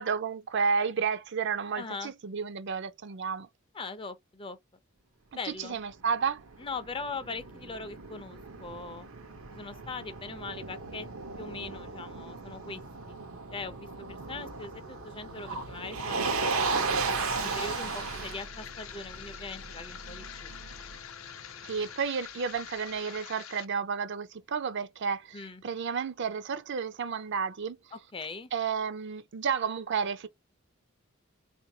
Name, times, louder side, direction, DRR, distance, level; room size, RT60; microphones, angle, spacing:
voice 1, 0.0-3.5 5.5-6.4 21.6-27.8 28.5-30.3, right 6 dB, 55° right, 0.5 m, -31 dB
voice 2, 1.8-2.1 3.7-4.6 5.3-5.8 6.6-9.1 9.5-11.1 11.4-12.8 13.1-13.2 13.5-17.0 17.4-20.6 25.3-25.6 27.9-28.5, left 4 dB, 25° left, 0.5 m, -41 dB
Motor vehicle (road), 5.9-21.0, right 4 dB, 90° right, 0.8 m, -36 dB
sound 1, 14.6-22.0, left 3 dB, 50° left, 0.8 m, -55 dB
sound 2, 17.2-23.6, left 9 dB, 80° left, 0.6 m, -45 dB
3.9 x 2.6 x 2.7 m
head